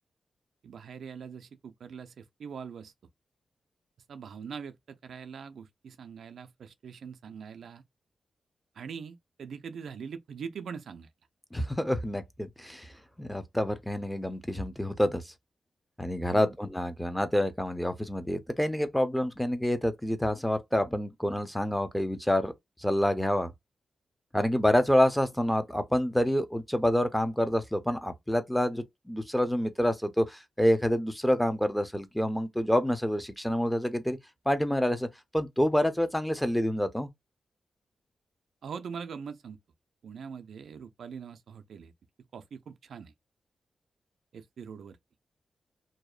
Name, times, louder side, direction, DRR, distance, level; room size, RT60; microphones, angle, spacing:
voice 1, 0.6-2.9 4.1-7.8 8.8-11.1 16.3-16.5 38.6-39.6 40.0-41.9 42.3-43.1 44.3-45.0, right 6 dB, 80° right, 0.4 m, -42 dB
voice 2, 11.5-12.9 13.2-15.3 16.0-22.5 22.8-23.5 24.3-34.2 34.5-35.1 35.3-37.1, equal, 5° left, 0.6 m, -27 dB
2.7 x 2.0 x 2.3 m
cardioid pair, 60°, 0 cm